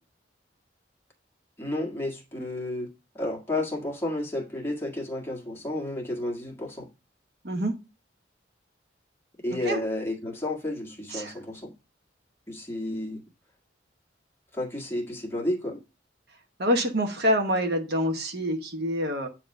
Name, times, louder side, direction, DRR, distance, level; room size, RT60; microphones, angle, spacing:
voice 1, 1.6-2.9 3.1-6.9 9.4-11.7 12.5-13.2 14.5-15.8, left 1 dB, 15° left, 1.6 m, -31 dB
voice 2, 16.6-19.3, equal, 60° right, 1.1 m, -26 dB
9.1 x 3.1 x 5.3 m
head